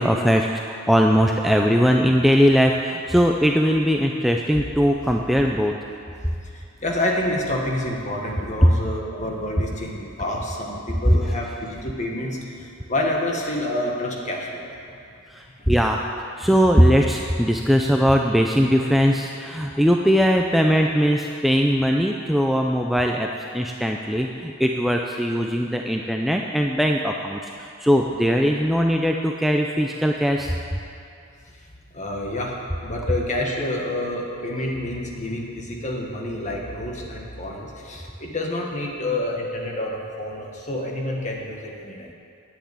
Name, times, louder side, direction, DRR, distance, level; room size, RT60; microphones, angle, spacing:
voice 1, 0.0-5.7 11.1-11.2 15.3-16.0 16.4-23.3 23.5-30.5, equal, ahead, 1 dB, 0.4 m, -20 dB
voice 2, 6.5-14.7 19.7-19.8 31.9-42.1, left 1 dB, 35° left, -1 dB, 1.7 m, -28 dB
10.0 x 8.1 x 8.7 m, 2.5 s
head